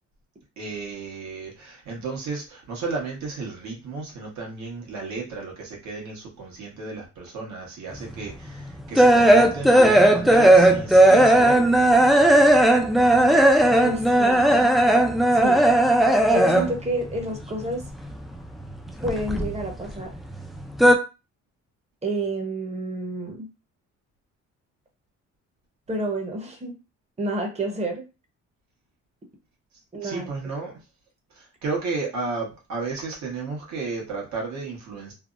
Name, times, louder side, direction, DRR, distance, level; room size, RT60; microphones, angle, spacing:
voice 1, 0.6-11.7 30.0-30.7 31.3-35.1, right 4 dB, 70° right, -1 dB, 1.3 m, -33 dB
sound 1, 8.1-16.9 17.1-18.3 18.6-20.0 20.3-20.9, right 1 dB, ahead, 0.3 m, -16 dB
voice 2, 13.8-14.7 15.3-15.6 16.3-17.8 19.0-20.1 22.0-23.5 25.9-26.7 27.2-28.0 29.9-30.3, right 1 dB, 20° right, 2 dB, 0.8 m, -29 dB
3.3 x 2.0 x 2.5 m, 0.29 s
cardioid pair, 90°, 30 cm